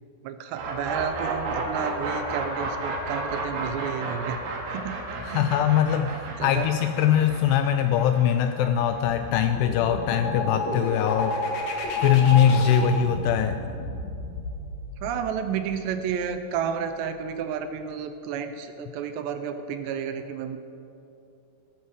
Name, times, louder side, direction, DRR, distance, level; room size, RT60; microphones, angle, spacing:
voice 1, 0.2-5.5 6.4-6.7 15.0-20.6, right 7 dB, 80° right, 9 dB, 2.7 m, -31 dB
sound 1, 0.5-10.4, right 3 dB, 65° right, 3.4 m, -33 dB
voice 2, 5.2-11.4 12.0-13.6, left 9 dB, 85° left, 8 dB, 2.4 m, -22 dB
sound 2, 8.9-16.4, left 2 dB, 55° left, 2.2 m, -31 dB
16.5 x 13.5 x 4.9 m, 2.8 s
omnidirectional pair, 5.3 m